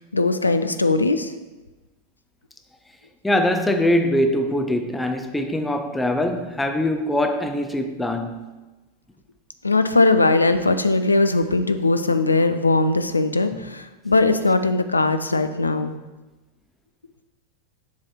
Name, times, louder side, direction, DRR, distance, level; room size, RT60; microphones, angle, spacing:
voice 1, 0.0-1.3 9.6-16.0, left 3 dB, 80° left, 0.4 m, -20 dB
voice 2, 3.2-8.4, left 1 dB, 5° left, 0.5 m, -22 dB
7.1 x 3.2 x 5.6 m
figure-of-eight pair, 90°, 0 cm